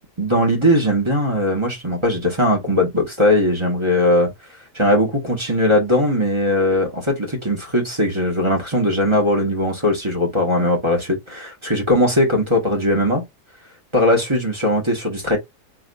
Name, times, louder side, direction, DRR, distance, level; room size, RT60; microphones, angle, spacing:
voice 1, 0.2-4.3 4.7-13.2 13.9-15.4, left 1 dB, 20° right, 1.8 m, -19 dB
4.4 x 3.8 x 2.6 m
omnidirectional pair, 1.7 m